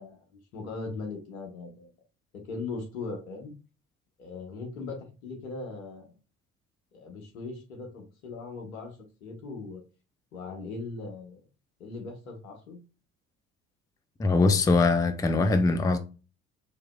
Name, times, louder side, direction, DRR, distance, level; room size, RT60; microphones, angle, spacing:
voice 1, 0.0-1.9 2.5-3.5 4.2-6.1 6.9-9.8 10.3-11.4 11.8-12.8, left 3 dB, 75° left, 1.2 m, -39 dB
voice 2, 14.2-16.0, left 3 dB, 10° left, 0.5 m, -22 dB
4.7 x 3.0 x 2.2 m
figure-of-eight pair, 55°, 42 cm